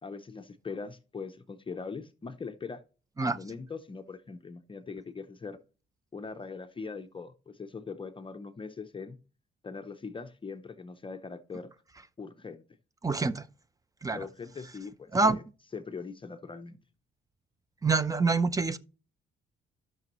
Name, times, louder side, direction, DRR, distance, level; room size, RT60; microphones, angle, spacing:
voice 1, 0.0-2.8 3.2-5.6 6.1-9.2 9.6-11.7 12.2-12.6 14.1-15.4 15.7-16.8, left 4 dB, 25° left, 0.7 m, -41 dB
voice 2, 13.0-13.4 14.0-14.2 15.1-15.4 17.8-18.8, right 3 dB, 15° right, 0.6 m, -26 dB
13.5 x 6.1 x 3.0 m
cardioid pair, 90°, 20 cm